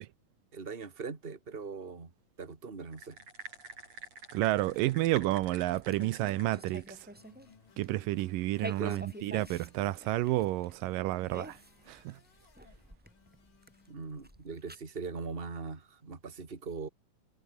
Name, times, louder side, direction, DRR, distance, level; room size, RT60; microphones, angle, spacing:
voice 1, 0.5-2.1 2.4-3.2 8.8-9.0 13.9-16.9, right 4 dB, 20° right, 2.2 m, -40 dB
sound 1, 2.9-6.9, right 3 dB, 50° right, 8.0 m, -48 dB
voice 2, 4.3-7.1 7.8-11.6 11.9-12.2, right 16 dB, 85° right, 2.5 m, -30 dB
sound 2, 4.6-7.5 7.8-8.0 8.5-14.7, equal, 5° right, 3.4 m, -48 dB
sound 3, 7.2-14.0, left 6 dB, 75° left, 5.7 m, -62 dB
omnidirectional pair, 3.9 m